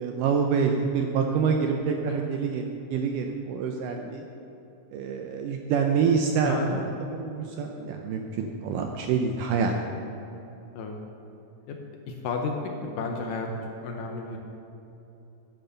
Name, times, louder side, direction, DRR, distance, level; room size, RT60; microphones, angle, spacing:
voice 1, 0.0-4.3 4.9-9.8, right 6 dB, 80° right, 3 dB, 2.0 m, -26 dB
voice 2, 6.4-6.8 10.8-11.0 11.7-11.8 12.1-12.5 12.8-13.5 13.8-14.4, left 4 dB, 70° left, 2 dB, 2.1 m, -32 dB
9.6 x 9.2 x 6.9 m, 2.9 s
omnidirectional pair, 4.4 m